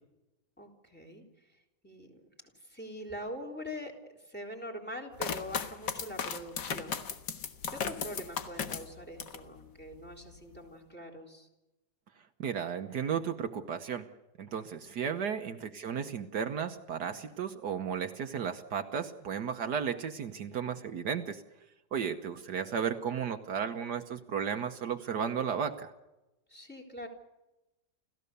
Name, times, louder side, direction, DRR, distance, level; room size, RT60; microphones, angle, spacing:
voice 1, 0.6-1.2 1.8-7.0 7.7-11.5 15.2-15.4 22.6-22.7 26.5-27.1, equal, 5° left, 2 dB, 3.7 m, -44 dB
sound 1, 5.2-9.5 9.9-10.6, left 7 dB, 75° left, 1.9 m, -36 dB
voice 2, 12.4-14.1 14.4-21.4 21.9-25.9, right 7 dB, 70° right, 7 dB, 1.6 m, -34 dB
30.0 x 15.0 x 6.8 m, 1.0 s
omnidirectional pair, 1.9 m